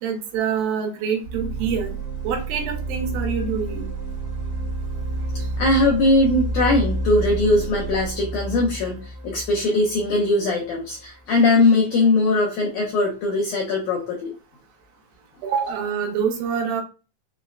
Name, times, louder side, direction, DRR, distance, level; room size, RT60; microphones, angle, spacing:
voice 1, 0.0-2.0 2.2-3.9 15.4-16.8, right 7 dB, 80° right, 2 dB, 2.6 m, -26 dB
sound 1, 1.2-11.0, right 2 dB, 65° right, 1.7 m, -29 dB
voice 2, 5.6-14.3, left 2 dB, 80° left, -1 dB, 1.8 m, -20 dB
5.8 x 2.1 x 2.3 m, 0.33 s
omnidirectional pair, 4.3 m